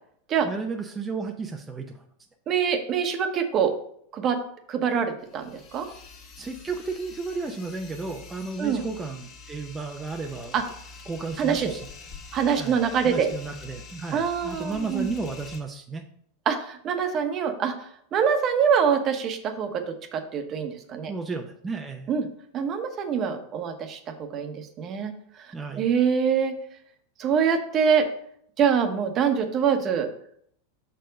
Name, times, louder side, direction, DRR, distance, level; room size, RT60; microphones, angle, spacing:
voice 1, 0.4-2.0 6.4-10.6 11.1-11.9 12.6-16.0 21.1-22.1 25.5-25.9, right 4 dB, 15° right, 2 dB, 0.6 m, -33 dB
voice 2, 2.5-3.7 4.1-4.4 4.7-5.9 8.6-8.8 10.5-10.6 11.4-11.7 12.3-13.3 14.1-15.1 16.5-21.1 22.1-22.2 22.5-26.5 27.2-28.1 28.6-30.1, right 7 dB, 35° right, 6 dB, 1.0 m, -25 dB
sound 1, 5.2-15.6, left 4 dB, 40° left, 1.7 m, -46 dB
6.2 x 4.5 x 5.2 m, 0.65 s
supercardioid pair, 125°, 0 cm